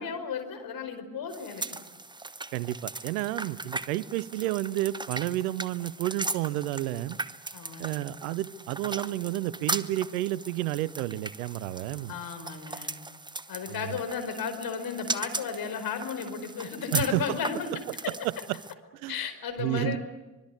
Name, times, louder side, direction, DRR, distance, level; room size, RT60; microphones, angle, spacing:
voice 1, 0.0-1.6 7.5-8.1 12.1-13.0 13.5-17.7 19.1-20.0, left 6 dB, 50° left, 8 dB, 4.7 m, -34 dB
sound 1, 1.3-18.7, right 2 dB, 10° right, 1.2 m, -38 dB
voice 2, 2.5-7.2 7.8-12.2 13.7-14.0 16.9-17.2 18.2-18.6 18.9-19.2 19.6-20.0, right 15 dB, 65° right, 22 dB, 0.8 m, -31 dB
24.5 x 23.0 x 9.6 m, 1.1 s
figure-of-eight pair, 50°, 46 cm